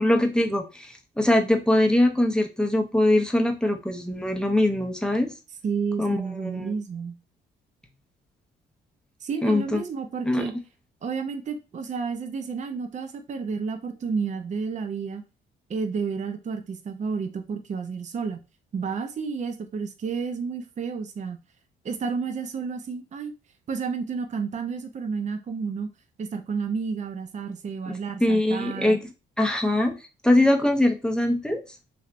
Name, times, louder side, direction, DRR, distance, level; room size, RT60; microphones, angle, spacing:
voice 1, 0.0-5.3 6.0-6.7 9.4-9.8 10.2-10.5 28.2-29.0 29.4-30.0 30.2-31.6, left 1 dB, 5° left, 3 dB, 0.6 m, -22 dB
voice 2, 5.6-7.2 9.2-10.5 11.0-15.2 15.7-18.4 18.7-21.4 21.8-23.3 23.7-25.9 26.2-29.0, right 5 dB, 35° right, 6 dB, 0.5 m, -31 dB
3.3 x 2.7 x 2.5 m, 0.29 s
cardioid pair, 90°, 20 cm